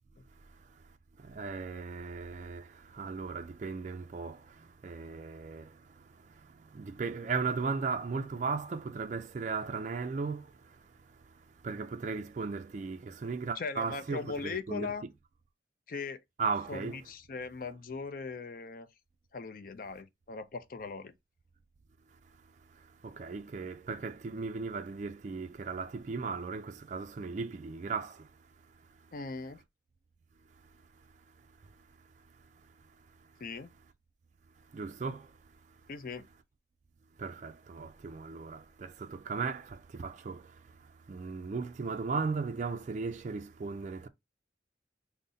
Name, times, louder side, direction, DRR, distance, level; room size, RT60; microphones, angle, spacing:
voice 1, 1.2-4.4 4.8-5.7 6.7-10.5 11.6-15.1 16.4-17.0 23.0-28.3 34.7-35.3 37.2-40.5 41.1-44.1, right 4 dB, 40° right, 0.3 m, -36 dB
voice 2, 13.6-15.0 15.9-16.2 16.7-18.9 19.3-21.1 29.1-29.6 33.4-33.7 35.9-36.2, left 4 dB, 50° left, 0.4 m, -39 dB
3.8 x 2.1 x 3.9 m
head